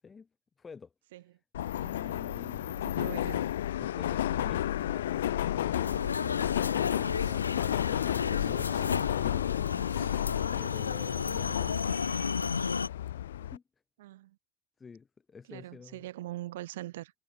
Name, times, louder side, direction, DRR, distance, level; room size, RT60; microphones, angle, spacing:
voice 1, 0.6-0.9 1.9-3.3 10.6-12.0 13.4-13.6 14.8-16.0, left 5 dB, 5° left, 3.0 m, -49 dB
Subway metro underground, 1.5-13.6, left 12 dB, 30° left, 0.5 m, -32 dB
voice 2, 2.8-3.5 14.0-14.4 15.5-17.1, right 15 dB, 25° right, 6.1 m, -42 dB
sound 1, 5.7-12.9, left 5 dB, 70° left, 1.2 m, -34 dB
hypercardioid pair, 165°, 0 cm